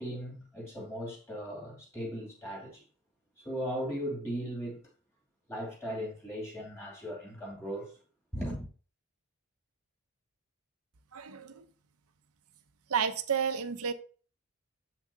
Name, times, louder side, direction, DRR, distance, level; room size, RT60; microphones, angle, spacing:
voice 1, 0.0-2.8 3.4-4.8 5.5-7.9 8.3-8.6, equal, 10° left, 2.5 m, -37 dB
voice 2, 11.1-11.6 12.9-13.9, right 7 dB, 85° right, 0.7 m, -31 dB
7.7 x 5.9 x 2.7 m
head